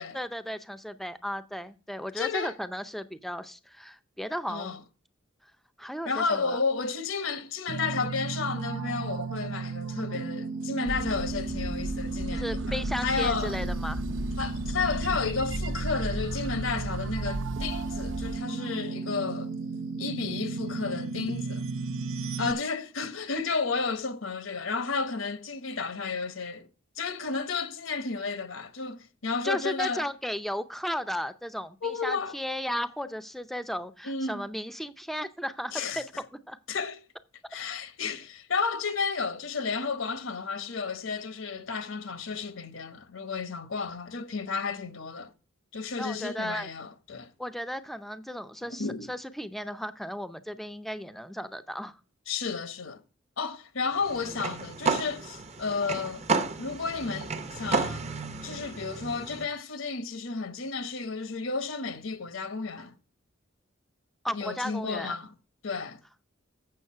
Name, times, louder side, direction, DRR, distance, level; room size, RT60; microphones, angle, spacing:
voice 1, 0.0-4.8 5.8-6.6 12.3-14.0 29.4-36.1 36.5-36.6 46.0-46.7 47.4-52.0 64.2-65.2, equal, ahead, 0.5 m, -35 dB
voice 2, 2.2-2.5 4.5-4.8 6.1-13.6 14.4-19.5 20.0-21.6 22.4-26.7 27.0-30.1 31.8-32.4 34.0-34.4 35.7-36.0 36.7-37.0 37.5-45.3 45.7-47.3 48.8-49.1 52.3-53.0 53.4-56.3 56.6-58.1 58.4-63.0 64.3-65.3 65.6-66.0, left 4 dB, 75° left, 0.9 m, -32 dB
sound 1, 7.7-22.5, right 4 dB, 85° right, 0.6 m, -35 dB
sound 2, 10.9-18.4, equal, 65° right, 0.9 m, -35 dB
sound 3, 54.0-59.4, right 4 dB, 35° right, 0.8 m, -32 dB
7.9 x 6.6 x 5.5 m
head